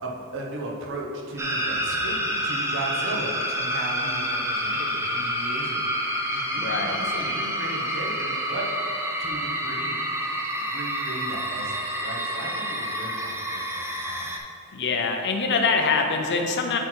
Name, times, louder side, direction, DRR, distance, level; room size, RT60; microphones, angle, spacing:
voice 1, 0.0-8.7 9.2-10.0 10.5-14.3, right 2 dB, 60° right, -1 dB, 1.2 m, -36 dB
sound 1, 1.4-14.4, equal, 10° right, 0.7 m, -28 dB
voice 2, 6.6-7.0 14.7-16.8, left 4 dB, 50° left, 3 dB, 0.6 m, -24 dB
8.4 x 4.6 x 4.5 m, 2.6 s
head